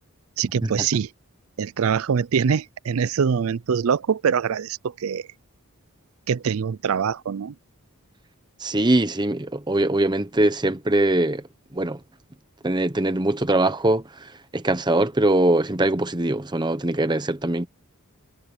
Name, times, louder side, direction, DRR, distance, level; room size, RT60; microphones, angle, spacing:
voice 1, 0.4-1.1 1.6-5.3 6.3-7.5, right 6 dB, 65° right, 0.4 m, -24 dB
voice 2, 8.6-11.4 11.7-12.0 12.6-14.0 14.5-17.7, right 1 dB, 20° right, 0.9 m, -22 dB
head